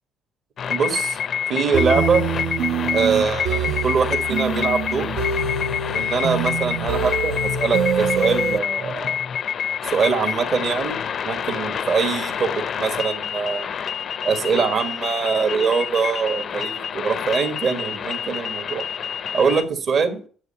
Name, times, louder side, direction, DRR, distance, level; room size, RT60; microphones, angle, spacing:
sound 1, 0.6-19.6, left 8 dB, 40° left, 0.5 m, -27 dB
voice 1, 0.7-1.2 1.5-2.2 2.9-5.1 5.9-9.2 9.8-12.5 12.8-13.7 14.2-18.8 19.3-20.2, right 5 dB, 45° right, 7 dB, 1.7 m, -23 dB
sound 2, 1.7-8.6, right 5 dB, 75° right, 1.2 m, -25 dB
9.6 x 7.7 x 5.5 m, 0.41 s
cardioid pair, 155°, 0 cm